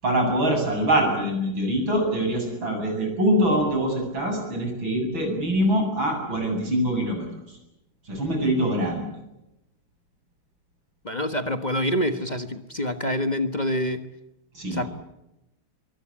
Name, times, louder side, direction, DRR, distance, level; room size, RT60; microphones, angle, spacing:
voice 1, 0.0-7.3 8.1-9.1 14.5-14.9, right 1 dB, 80° right, 3 dB, 8.8 m, -24 dB
voice 2, 11.0-14.1 14.7-14.9, equal, 25° left, 8 dB, 1.2 m, -26 dB
24.0 x 23.5 x 8.7 m, 0.91 s
omnidirectional pair, 2.1 m